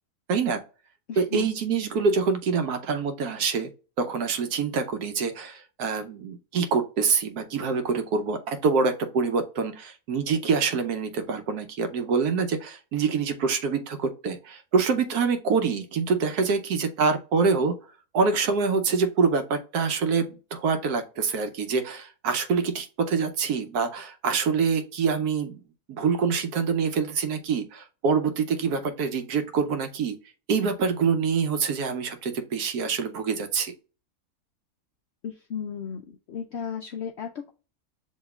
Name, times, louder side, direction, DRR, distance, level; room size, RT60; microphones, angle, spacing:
voice 1, 0.3-0.6 1.2-3.7 4.0-17.7 18.1-25.6 25.9-30.2 30.5-33.7, right 5 dB, 75° right, 7 dB, 1.3 m, -25 dB
voice 2, 1.1-1.5 35.2-37.5, left 7 dB, 70° left, 3 dB, 0.6 m, -35 dB
7.3 x 2.8 x 2.3 m, 0.35 s
omnidirectional pair, 1.7 m